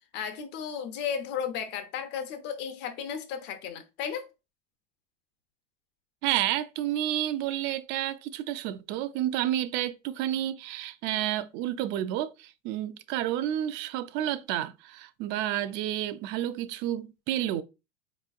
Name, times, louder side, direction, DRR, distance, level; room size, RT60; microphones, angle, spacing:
voice 1, 0.1-4.2, left 7 dB, 55° left, 0.9 m, -34 dB
voice 2, 6.2-17.6, right 12 dB, 60° right, 0.4 m, -30 dB
4.5 x 3.0 x 2.4 m
supercardioid pair, 120°, 21 cm